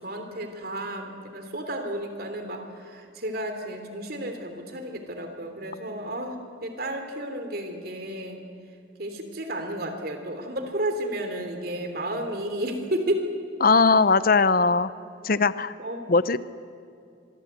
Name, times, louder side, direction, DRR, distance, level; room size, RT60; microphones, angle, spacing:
voice 1, 0.0-6.3 6.6-8.4 9.0-13.2 15.8-16.1, right 1 dB, 55° right, 6 dB, 3.2 m, -32 dB
voice 2, 13.6-14.9 15.2-15.7 16.1-16.4, left 4 dB, 50° left, 15 dB, 0.7 m, -19 dB
25.5 x 22.5 x 8.2 m, 2.5 s
head